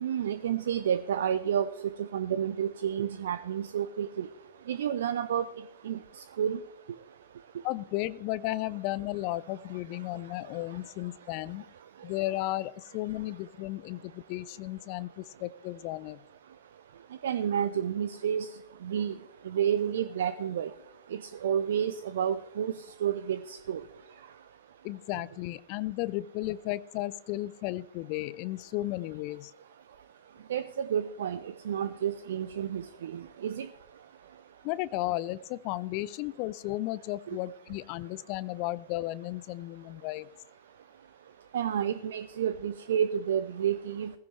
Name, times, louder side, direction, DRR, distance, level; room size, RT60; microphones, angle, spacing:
voice 1, 0.0-1.7 2.0-4.3 4.7-5.5 5.8-6.0 6.4-6.6 17.2-18.5 18.8-19.1 19.5-20.7 21.1-22.7 23.0-23.8 30.5-31.4 31.7-33.7 41.5-44.1, right 9 dB, 60° right, 14 dB, 0.5 m, -30 dB
voice 2, 7.6-11.6 12.0-16.2 24.8-29.5 34.6-40.3, left 17 dB, 45° left, 18 dB, 0.5 m, -34 dB
17.0 x 15.0 x 3.2 m, 0.83 s
figure-of-eight pair, 90°, 0 cm